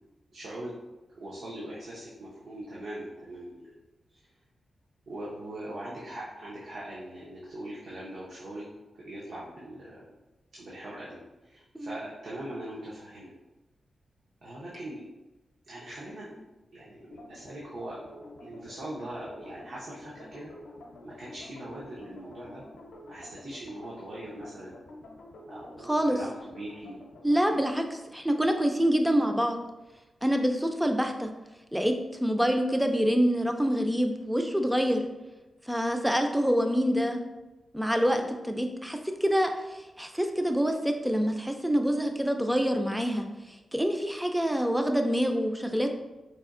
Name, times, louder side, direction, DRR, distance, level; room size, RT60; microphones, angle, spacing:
voice 1, 0.3-0.7 1.1-3.8 4.1-4.2 5.1-8.6 9.0-10.0 10.5-13.3 14.4-15.1 15.7-16.4 16.7-18.0 18.4-20.5 21.0-22.6 23.1-24.7 25.5-27.0 27.5-27.7 38.1-38.3, right 1 dB, 70° right, -7 dB, 0.7 m, -41 dB
sound 1, 17.1-27.4, left 1 dB, 85° left, 0.6 m, -49 dB
voice 2, 25.8-26.2 27.2-29.6 30.2-31.3 31.7-35.0 35.7-37.2 37.7-45.9, equal, 5° right, 5 dB, 0.3 m, -26 dB
4.2 x 2.6 x 2.4 m, 1.1 s
wide cardioid pair, 140°, 0 cm